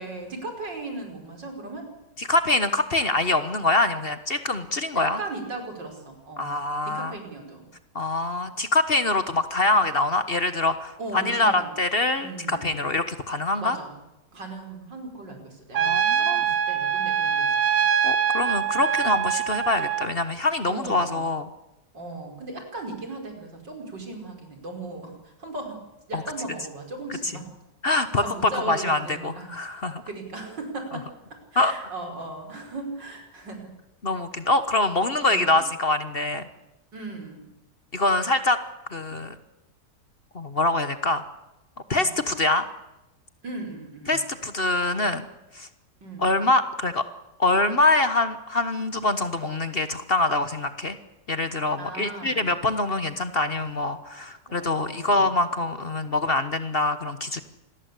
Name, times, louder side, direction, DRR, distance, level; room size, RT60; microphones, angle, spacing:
voice 1, 0.0-1.9 4.9-6.6 6.8-7.7 11.0-11.8 12.2-12.8 13.6-13.9 14.3-17.9 18.9-19.1 20.7-21.3 21.9-25.8 26.1-27.5 28.0-29.5 30.1-31.0 31.5-33.7 35.3-35.7 36.9-37.5 42.0-42.2 43.4-44.2 46.0-46.4 51.8-52.6 54.5-55.4, right 2 dB, 85° right, 4 dB, 5.8 m, -37 dB
voice 2, 2.2-5.2 6.4-7.1 7.9-13.8 15.7-16.4 18.0-21.5 26.1-26.2 27.8-30.0 31.6-31.7 34.0-36.4 37.9-38.6 38.9-39.3 40.3-41.2 41.9-42.7 44.1-45.3 45.5-45.7 46.2-47.0 47.4-51.0 51.3-57.4, left 2 dB, 35° left, 11 dB, 1.4 m, -24 dB
Trumpet, 15.7-20.1, right 8 dB, 55° right, 1.5 m, -24 dB
26.5 x 20.5 x 8.4 m, 0.95 s
omnidirectional pair, 1.9 m